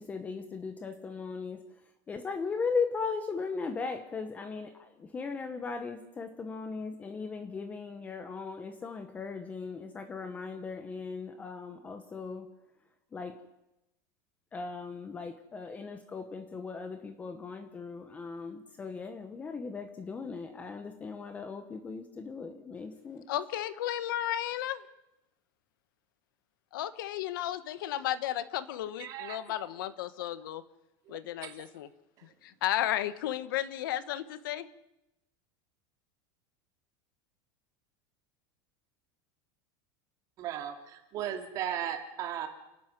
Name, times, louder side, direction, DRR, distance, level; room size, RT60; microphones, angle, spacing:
voice 1, 0.0-1.7 2.1-12.5 13.1-13.4 14.5-23.2, left 4 dB, 15° left, 9 dB, 1.0 m, -38 dB
voice 2, 23.3-24.8 26.7-30.6 31.1-31.9 32.4-34.7, left 12 dB, 80° left, 14 dB, 1.3 m, -33 dB
voice 3, 29.0-29.4 31.1-31.5 40.4-42.5, right 10 dB, 30° right, 5 dB, 2.7 m, -36 dB
28.0 x 12.0 x 9.1 m, 0.93 s
supercardioid pair, 175°, 11 cm